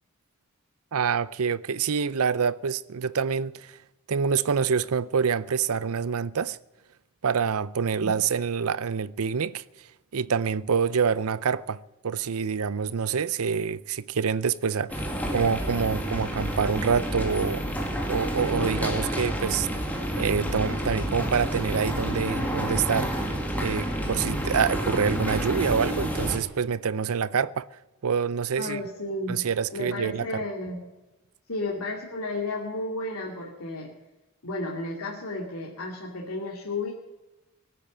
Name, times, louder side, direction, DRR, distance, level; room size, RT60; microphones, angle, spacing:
voice 1, 0.9-3.7 4.1-6.6 7.2-9.6 10.1-17.6 18.1-19.8 20.2-23.1 23.6-27.7 28.0-28.8 29.3-30.3, right 6 dB, 85° right, 0.6 m, -26 dB
sound 1, 14.9-26.4, equal, 5° left, 2.2 m, -29 dB
voice 2, 28.6-29.5 29.7-30.9 31.5-33.9 34.4-36.9, left 2 dB, 85° left, 2.6 m, -33 dB
18.0 x 8.8 x 9.1 m
head